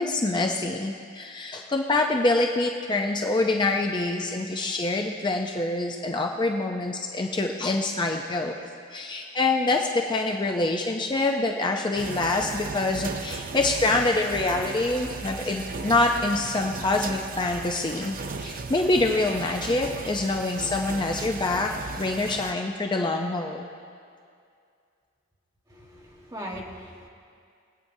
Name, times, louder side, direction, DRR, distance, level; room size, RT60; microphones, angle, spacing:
voice 1, 0.0-8.5 8.9-18.2 18.4-21.7 22.0-23.7, left 2 dB, 20° left, 2 dB, 0.5 m, -25 dB
sound 1, 12.0-22.5, right 4 dB, 45° right, 0.5 m, -36 dB
voice 2, 25.7-27.1, equal, 20° right, -1 dB, 1.3 m, -39 dB
24.0 x 8.7 x 2.7 m, 2.3 s
head